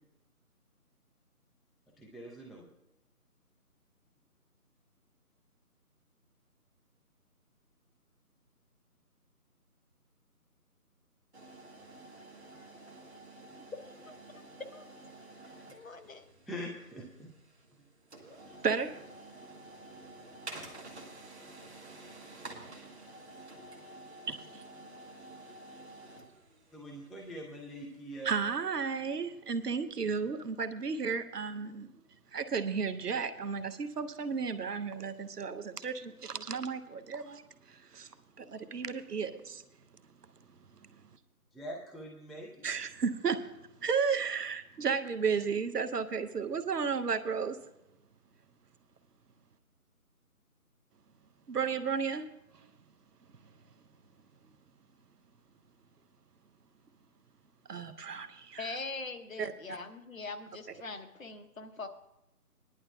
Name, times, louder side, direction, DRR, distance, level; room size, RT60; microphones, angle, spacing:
voice 1, 2.0-2.7 15.3-15.9 16.5-17.3 26.7-28.3 41.5-42.7, equal, ahead, 0.5 m, -44 dB
sound 1, 11.3-28.2, right 2 dB, 45° right, 1.4 m, -50 dB
voice 2, 14.3-14.8 15.4-16.3 58.6-61.9, left 3 dB, 60° left, 1.0 m, -43 dB
voice 3, 18.6-19.0 22.4-22.7 24.3-24.6 28.2-41.2 42.6-47.6 51.5-52.7 53.2-53.8 57.7-58.8 59.4-59.8, right 5 dB, 80° right, 0.9 m, -34 dB
20.0 x 11.0 x 2.3 m
figure-of-eight pair, 170°, 46 cm